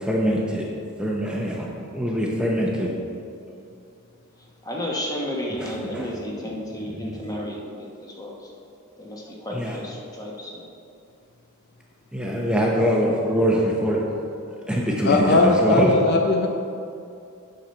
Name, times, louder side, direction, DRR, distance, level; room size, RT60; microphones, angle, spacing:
voice 1, 0.0-0.6 1.0-2.9 5.6-6.1 6.8-7.2 9.5-9.8 12.1-14.0 14.7-15.9, equal, 5° right, -2 dB, 0.7 m, -23 dB
voice 2, 4.6-8.3 9.0-10.7 16.3-16.5, left 1 dB, 15° left, -2 dB, 1.2 m, -32 dB
voice 3, 15.0-16.5, left 3 dB, 50° left, 2 dB, 0.6 m, -19 dB
8.7 x 6.5 x 4.4 m, 2.5 s
head